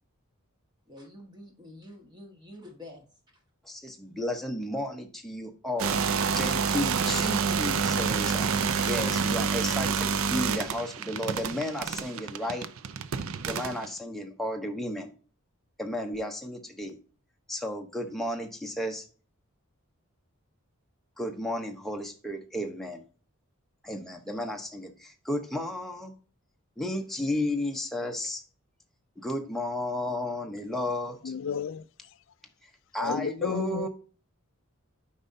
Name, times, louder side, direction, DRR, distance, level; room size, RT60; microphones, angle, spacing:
voice 1, 0.9-3.0, left 1 dB, 20° right, 1.5 m, -47 dB
voice 2, 3.6-12.7 13.5-15.1 15.8-17.0 17.5-19.0 21.2-23.0 23.8-26.1 26.8-28.4 29.2-31.3 32.6-33.9, left 1 dB, ahead, 0.8 m, -33 dB
sound 1, 5.8-13.9, right 6 dB, 65° right, 0.5 m, -28 dB
voice 3, 31.2-31.8 33.0-33.9, left 7 dB, 60° left, 0.3 m, -32 dB
8.7 x 5.4 x 2.7 m
head